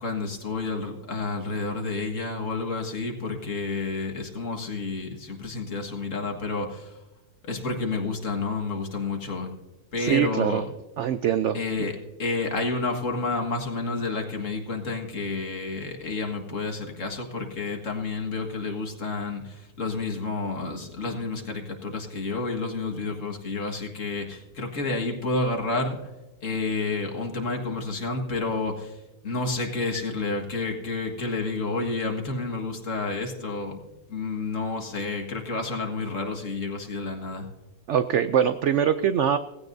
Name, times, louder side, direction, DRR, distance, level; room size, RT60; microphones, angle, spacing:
voice 1, 0.0-6.9 7.4-9.5 9.9-10.6 11.5-26.0 26.4-28.9 29.2-37.5, left 3 dB, 50° left, 2 dB, 2.0 m, -30 dB
voice 2, 10.0-10.6 11.0-11.6 37.9-39.4, right 9 dB, 75° right, 11 dB, 0.6 m, -23 dB
17.5 x 15.5 x 2.6 m, 1.1 s
omnidirectional pair, 1.8 m